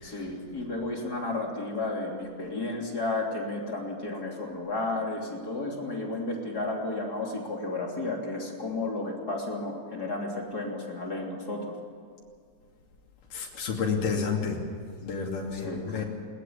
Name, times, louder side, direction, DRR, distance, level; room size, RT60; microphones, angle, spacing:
voice 1, 0.0-11.8 15.5-16.0, left 2 dB, 30° left, 0 dB, 3.5 m, -33 dB
voice 2, 13.3-14.6 15.0-16.0, left 5 dB, 90° left, -1 dB, 4.3 m, -30 dB
21.0 x 19.5 x 8.7 m, 2.2 s
omnidirectional pair, 3.7 m